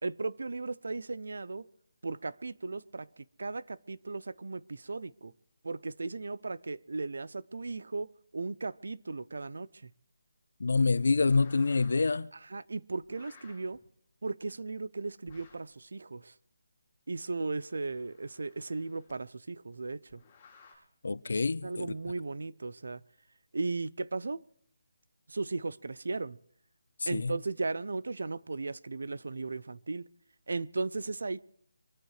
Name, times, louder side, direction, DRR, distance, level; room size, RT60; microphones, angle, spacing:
voice 1, 0.0-1.7 2.0-5.3 5.6-9.9 12.3-13.8 14.2-16.3 17.1-20.2 21.6-23.0 23.5-24.4 25.3-26.4 27.1-30.1 30.5-31.4, right 3 dB, 60° right, 0.6 m, -36 dB
voice 2, 10.6-12.3 21.0-21.9 27.1-27.3, left 4 dB, 60° left, 0.6 m, -26 dB
sound 1, 11.2-12.1 13.0-13.8 15.3-15.7 17.3-19.1 20.1-20.7, left 5 dB, 10° left, 7.6 m, -58 dB
25.5 x 14.0 x 3.2 m
hypercardioid pair, 175°, 0 cm